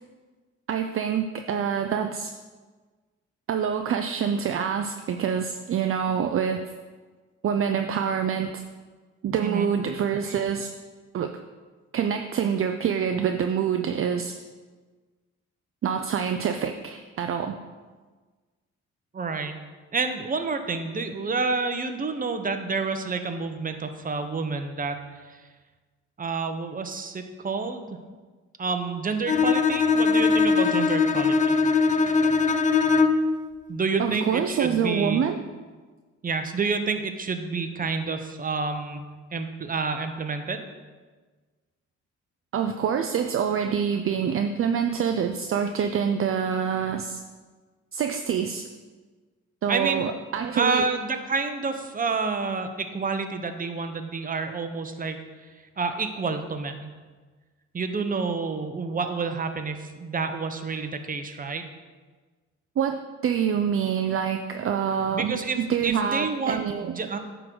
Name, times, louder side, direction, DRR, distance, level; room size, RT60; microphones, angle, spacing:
voice 1, 0.7-2.3 3.5-6.6 7.4-8.6 9.2-10.7 11.1-11.3 11.9-14.4 15.8-17.6 34.0-35.4 42.5-47.2 47.9-48.6 49.6-50.8 62.8-65.3 65.7-66.9, right 7 dB, 45° right, 6 dB, 0.5 m, -26 dB
voice 2, 19.1-19.6 19.9-25.5 26.2-27.9 28.6-31.6 33.7-35.2 36.2-39.0 39.3-40.7 49.7-50.1 50.5-55.2 55.4-56.9 57.7-61.6 65.1-67.2, right 4 dB, 30° right, 7 dB, 0.9 m, -29 dB
Bowed string instrument, 29.3-33.4, left 4 dB, 25° left, 0.5 m, -21 dB
9.5 x 3.9 x 6.2 m, 1.4 s
cardioid pair, 90°, 30 cm